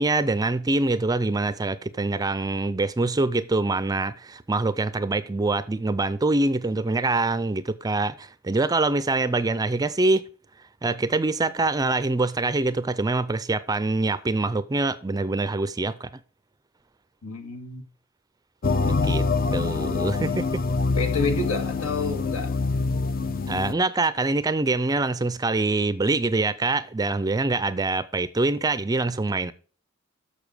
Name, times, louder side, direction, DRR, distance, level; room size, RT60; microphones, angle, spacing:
voice 1, 0.0-10.2 10.8-16.1 18.9-19.2 19.5-20.6 23.5-29.5, right 2 dB, 15° right, 0.4 m, -24 dB
voice 2, 17.2-17.8 21.0-22.5, left 3 dB, 85° left, 2.0 m, -28 dB
sound 1, 18.6-23.7, left 4 dB, 40° left, 0.6 m, -25 dB
7.1 x 6.6 x 6.5 m
head